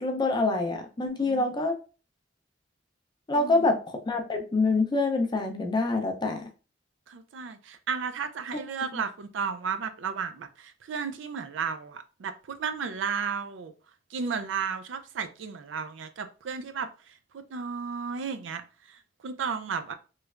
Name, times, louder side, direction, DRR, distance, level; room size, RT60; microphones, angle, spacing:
voice 1, 0.0-1.7 3.3-3.8 4.1-6.4 8.5-8.6, left 3 dB, 25° left, 0.4 m, -26 dB
voice 2, 1.2-1.6 3.3-3.7 7.1-13.7 14.1-18.6 18.9-19.9, right 6 dB, 75° right, 0.4 m, -34 dB
3.2 x 3.1 x 2.3 m
head